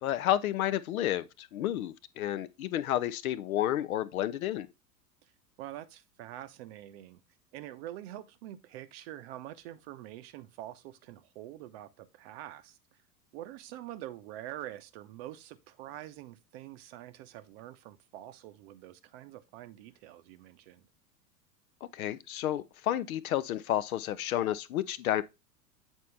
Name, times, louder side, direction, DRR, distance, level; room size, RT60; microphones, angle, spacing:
voice 1, 0.0-4.7 21.8-25.2, left 12 dB, 60° left, 0.6 m, -31 dB
voice 2, 5.6-7.2 7.5-12.8 13.3-20.9, right 13 dB, 40° right, 0.7 m, -45 dB
8.1 x 4.4 x 3.2 m
figure-of-eight pair, 90°, 48 cm